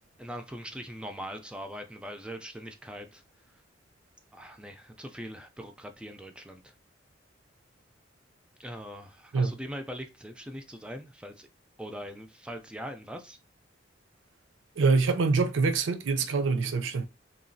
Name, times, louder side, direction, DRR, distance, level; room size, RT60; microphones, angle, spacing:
voice 1, 0.2-3.2 4.3-6.7 8.6-11.5 11.8-13.4, equal, 5° right, 0.3 m, -41 dB
voice 2, 14.8-17.1, right 4 dB, 80° right, 0.5 m, -25 dB
2.9 x 2.3 x 2.6 m
head